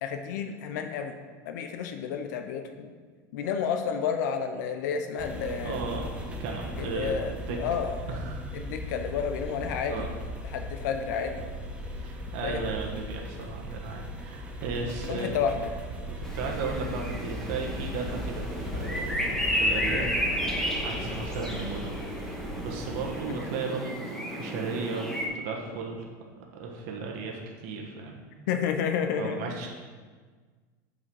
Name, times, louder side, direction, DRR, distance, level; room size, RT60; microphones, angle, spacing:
voice 1, 0.0-1.2 1.4-2.9 3.3-5.8 6.8-8.2 8.5-10.1 10.5-11.4 12.4-12.6 15.0-15.7 19.9-20.1 23.3-23.4 28.5-29.7, left 7 dB, 80° left, 6 dB, 0.6 m, -31 dB
sound 1, 5.2-23.2, left 1 dB, 10° right, 1.3 m, -38 dB
voice 2, 5.6-6.1 6.4-7.6 8.1-8.4 9.9-10.1 11.9-15.4 16.1-21.9 22.2-26.1 26.5-28.2 29.2-29.7, right 4 dB, 70° right, 0 dB, 1.3 m, -35 dB
sound 2, 16.2-25.3, equal, 5° left, 1.3 m, -32 dB
8.4 x 5.2 x 4.7 m, 1.5 s
supercardioid pair, 115°, 10 cm